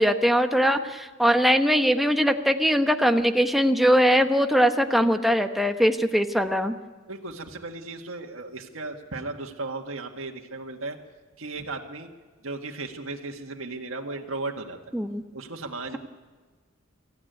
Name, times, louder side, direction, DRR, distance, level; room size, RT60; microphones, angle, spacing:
voice 1, 0.0-6.8 14.9-15.2, equal, ahead, 6 dB, 1.0 m, -21 dB
voice 2, 7.1-11.0 11.4-12.1 12.4-14.9 15.3-16.0, right 3 dB, 80° right, 2 dB, 1.8 m, -35 dB
24.5 x 15.0 x 9.3 m, 1.3 s
head